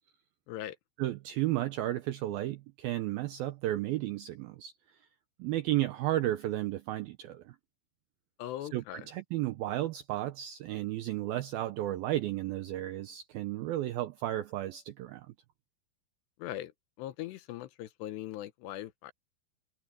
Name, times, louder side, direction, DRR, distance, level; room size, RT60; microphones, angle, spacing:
voice 1, 1.0-4.7 5.4-7.6 8.7-15.3, right 15 dB, 85° right, 2.1 m, -33 dB
voice 2, 8.4-9.1 16.4-16.7 17.0-19.1, left 13 dB, 75° left, 3.0 m, -40 dB
omnidirectional pair, 5.2 m